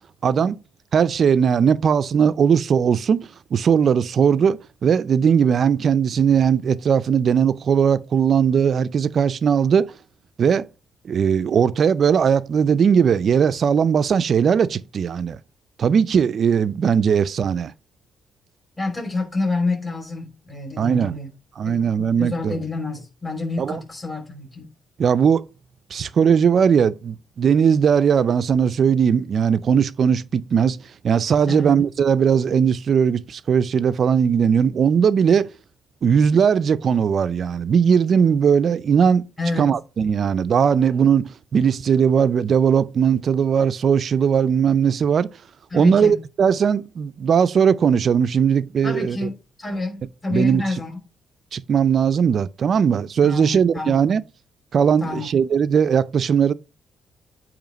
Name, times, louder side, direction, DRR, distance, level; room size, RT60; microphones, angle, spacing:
voice 1, 0.2-0.6 0.9-9.9 10.4-10.7 11.0-15.4 15.8-17.7 20.8-21.2 21.6-22.6 23.6-23.8 25.0-25.4 25.9-30.8 31.0-35.5 36.0-39.2 39.6-45.3 45.7-49.2 50.3-50.6 51.5-54.2 54.7-56.5, right 7 dB, 55° right, 0.4 m, -19 dB
voice 2, 18.8-21.3 21.6-21.9 22.2-24.7 31.5-31.8 39.4-39.7 45.7-46.2 48.8-51.0 53.2-54.0 55.0-55.3, left 3 dB, 20° left, 3.0 m, -28 dB
9.0 x 3.0 x 5.2 m
cardioid pair, 90°, 0 cm